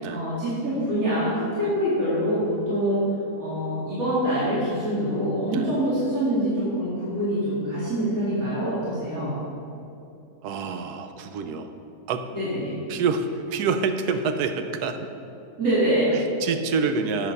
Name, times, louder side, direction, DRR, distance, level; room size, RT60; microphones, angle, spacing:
voice 1, 0.0-3.0 3.4-9.3 12.3-12.7 15.6-16.1, equal, 65° right, -12 dB, 3.3 m, -25 dB
voice 2, 10.4-11.7 12.1-12.2 12.9-15.0 16.1-17.3, right 5 dB, 80° right, 8 dB, 1.2 m, -27 dB
8.9 x 7.5 x 5.4 m, 2.7 s
omnidirectional pair, 1.7 m